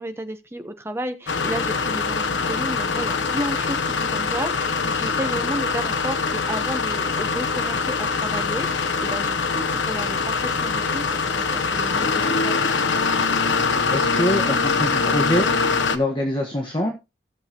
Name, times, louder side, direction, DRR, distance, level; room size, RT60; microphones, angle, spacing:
voice 1, 0.0-12.6, right 1 dB, 15° right, 8 dB, 0.9 m, -32 dB
sound 1, 1.3-16.0, left 4 dB, 85° left, 0.9 m, -23 dB
voice 2, 13.9-15.5 15.9-16.9, left 1 dB, 25° left, 0 dB, 1.3 m, -24 dB
16.5 x 6.4 x 2.9 m, 0.25 s
head